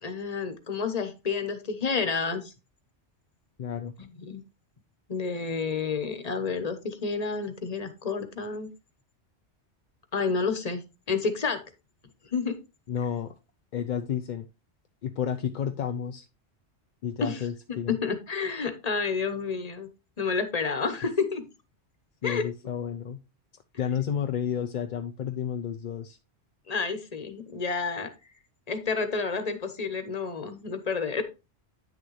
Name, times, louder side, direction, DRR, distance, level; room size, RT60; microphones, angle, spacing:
voice 1, 0.0-2.5 4.0-4.4 5.1-8.7 10.1-11.6 12.3-12.6 17.2-17.4 18.0-19.9 20.2-21.5 22.2-22.4 26.7-28.1 28.7-31.2, left 4 dB, 35° left, 9 dB, 1.1 m, -30 dB
voice 2, 3.6-3.9 12.9-13.3 13.7-14.5 15.0-16.2 17.0-18.0 22.2-23.2 23.8-26.2, left 8 dB, 55° left, 7 dB, 0.6 m, -31 dB
9.3 x 6.6 x 3.1 m, 0.28 s
omnidirectional pair, 1.2 m